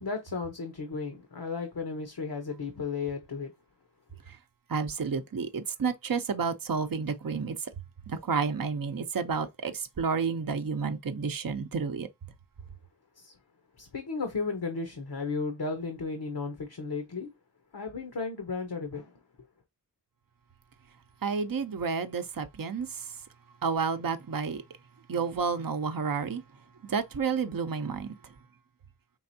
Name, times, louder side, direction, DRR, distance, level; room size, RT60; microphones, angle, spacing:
voice 1, 0.0-3.5 13.2-13.3 13.8-17.3 17.7-19.1, left 4 dB, 70° left, 0.9 m, -34 dB
voice 2, 4.7-7.6 8.1-12.1 21.2-22.9 23.6-24.6 25.1-26.4 26.8-28.2, right 5 dB, 60° right, 0.6 m, -30 dB
4.7 x 3.4 x 2.7 m
wide cardioid pair, 50°, 39 cm